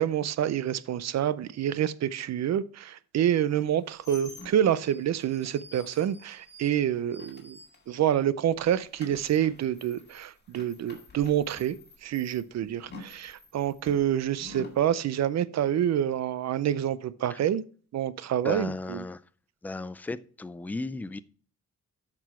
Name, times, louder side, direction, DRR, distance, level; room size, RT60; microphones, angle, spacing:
voice 1, 0.0-7.6 7.9-11.8 12.0-17.6 17.9-19.0, right 10 dB, 60° right, 0.5 m, -27 dB
sound 1, 3.6-8.2 8.5-14.8, left 2 dB, 35° left, 2.2 m, -49 dB
voice 2, 18.4-19.2 19.6-21.2, left 2 dB, 5° left, 0.3 m, -35 dB
9.3 x 6.1 x 4.3 m
wide cardioid pair, 135°, 30 cm